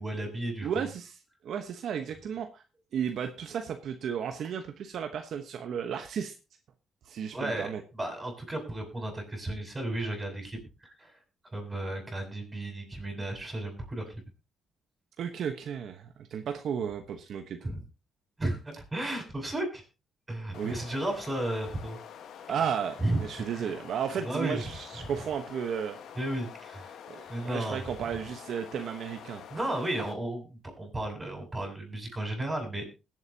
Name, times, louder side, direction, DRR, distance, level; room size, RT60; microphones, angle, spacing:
voice 1, 0.0-0.9 7.3-11.1 11.5-14.2 17.6-17.8 18.4-19.8 20.3-22.0 23.0-23.7 24.2-24.8 26.1-27.0 27.3-27.8 29.5-30.5 30.8-32.8, right 1 dB, 20° right, 3 dB, 6.3 m, -34 dB
voice 2, 0.6-2.6 2.9-6.3 7.0-7.8 15.2-17.7 20.5-20.8 22.5-26.0 27.1-29.4, right 7 dB, 70° right, 6 dB, 1.1 m, -34 dB
sound 1, 20.5-30.1, left 8 dB, 75° left, 1.4 m, -47 dB
21.0 x 8.0 x 2.8 m, 0.29 s
cardioid pair, 90°, 0 cm